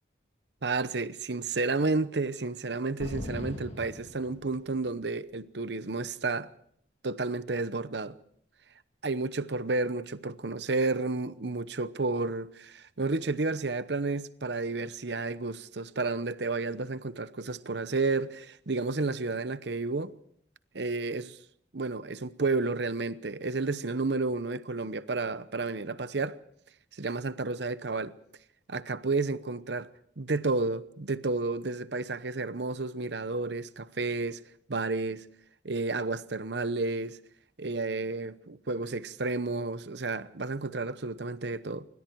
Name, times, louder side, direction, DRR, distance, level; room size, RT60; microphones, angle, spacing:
voice 1, 0.6-6.5 7.0-8.2 9.0-20.1 20.7-21.4 21.7-26.4 26.9-28.1 28.7-29.9 30.2-34.4 34.7-35.3 35.6-37.2 37.6-41.9, right 3 dB, 65° right, 0.9 m, -31 dB
sound 1, 3.0-4.9, equal, 35° left, 1.9 m, -40 dB
26.5 x 24.5 x 4.7 m
head